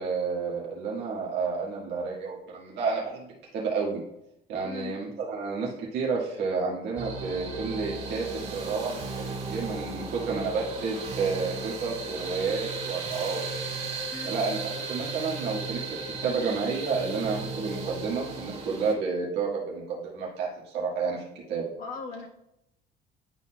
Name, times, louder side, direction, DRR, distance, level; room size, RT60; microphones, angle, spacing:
voice 1, 0.0-3.3 3.5-4.0 4.5-13.4 14.2-15.8 16.2-21.7, right 4 dB, 80° right, -5 dB, 1.7 m, -30 dB
voice 2, 4.6-5.0 14.1-14.3 21.8-22.3, left 4 dB, 55° left, 2 dB, 1.3 m, -38 dB
sound 1, 7.0-18.9, right 4 dB, 45° right, 2.3 m, -36 dB
11.0 x 4.1 x 2.2 m, 0.83 s
cardioid pair, 110°, 17 cm